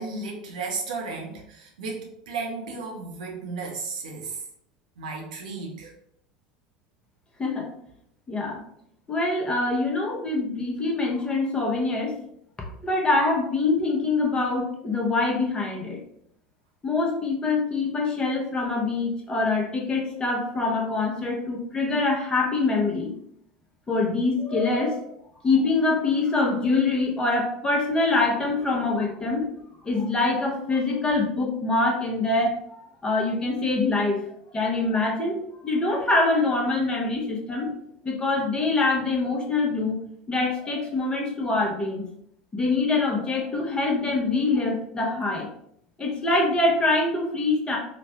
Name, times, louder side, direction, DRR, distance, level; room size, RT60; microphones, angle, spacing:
voice 1, 0.0-4.4 5.0-5.9, right 4 dB, 70° right, 0 dB, 0.6 m, -34 dB
voice 2, 8.3-8.6 9.1-12.2 12.8-16.0 16.8-23.1 23.9-25.0 25.4-29.5 29.8-32.6 33.0-34.2 34.5-35.4 35.6-37.7 38.0-40.0 40.3-42.0 42.5-45.5 46.0-47.8, left 3 dB, 20° left, -1 dB, 0.8 m, -24 dB
3.0 x 2.2 x 2.8 m, 0.72 s
figure-of-eight pair, 75°, 4 cm